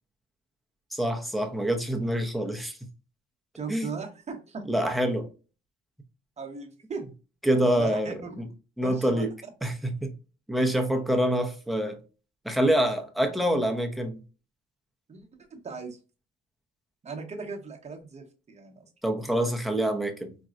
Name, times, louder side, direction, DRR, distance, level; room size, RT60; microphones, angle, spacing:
voice 1, 0.9-2.7 3.7-3.9 4.7-5.3 7.4-8.4 8.8-9.3 9.6-10.1 10.5-12.0 12.4-14.1 19.0-20.4, right 1 dB, ahead, 0.7 m, -26 dB
voice 2, 3.5-4.6 6.4-7.1 7.8-8.4 8.8-9.3 15.1-16.0 17.0-18.9, right 5 dB, 35° right, 0.9 m, -38 dB
4.0 x 2.2 x 2.4 m
cardioid pair, 90°, 20 cm